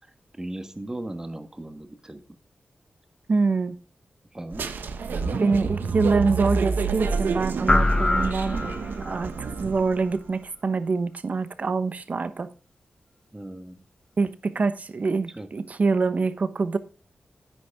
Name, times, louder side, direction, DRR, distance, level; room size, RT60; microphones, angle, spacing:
voice 1, 0.3-2.2 4.3-4.7 5.1-5.5 13.3-13.8 15.3-15.5, right 1 dB, 20° right, 1.4 m, -37 dB
voice 2, 3.3-3.7 5.4-8.6 9.0-12.5 14.2-16.8, right 4 dB, 50° right, 1.0 m, -25 dB
sound 1, 4.5-10.1, right 5 dB, 90° right, 1.0 m, -29 dB
sound 2, 7.7-9.3, left 2 dB, 20° left, 0.8 m, -23 dB
10.0 x 9.4 x 3.5 m
wide cardioid pair, 110°, 3 cm